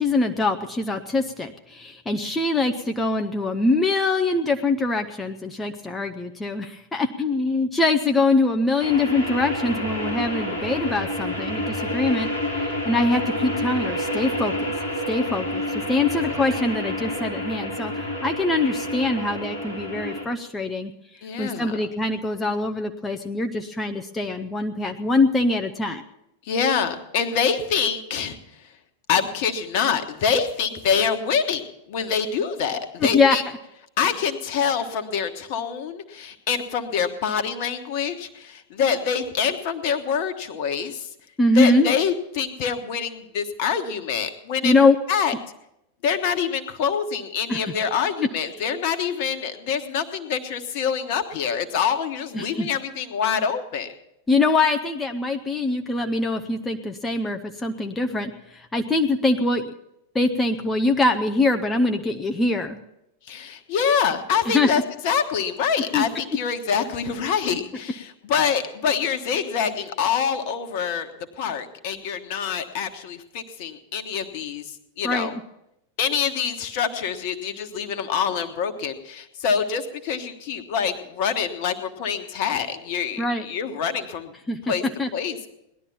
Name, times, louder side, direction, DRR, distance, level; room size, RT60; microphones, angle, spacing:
voice 1, 0.0-12.3 12.6-14.7 15.1-20.9 21.4-26.0 33.1-33.4 41.4-41.9 44.6-45.0 47.5-47.7 52.3-52.7 54.3-59.7 60.1-62.8 64.5-64.7 65.9-66.0 75.0-75.4 83.2-83.5 84.5-84.7 85.0-85.1, left 3 dB, 10° left, 4 dB, 0.7 m, -23 dB
sound 1, 8.8-20.2, left 1 dB, 85° right, 2.8 m, -29 dB
voice 2, 16.0-16.4 21.2-21.9 26.5-28.4 29.1-33.4 34.0-41.1 41.5-44.7 45.1-45.3 46.0-53.9 63.3-71.1 71.4-74.7 75.0-75.3 76.0-84.3 84.7-84.8 85.1-85.5, left 7 dB, 50° left, 8 dB, 1.3 m, -25 dB
18.0 x 11.5 x 5.6 m, 0.83 s
figure-of-eight pair, 90°, 0 cm